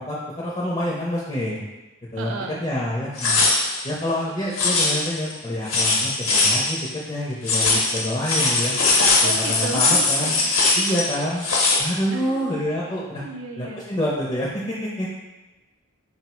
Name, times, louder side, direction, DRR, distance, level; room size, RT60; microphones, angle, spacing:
voice 1, 0.0-1.6 2.1-2.3 2.6-3.5 3.8-8.8 9.2-10.3 10.7-11.5 11.8-13.2 13.6-15.1, equal, 20° left, -5 dB, 0.5 m, -27 dB
voice 2, 2.2-2.6 9.2-10.3 12.1-12.5 13.2-13.8, right 3 dB, 65° right, 2 dB, 0.4 m, -33 dB
sound 1, 3.2-3.9 4.5-5.3 5.7-6.9 7.5-11.8, left 3 dB, 75° left, 0.8 m, -20 dB
4.1 x 2.0 x 4.3 m, 1.2 s
head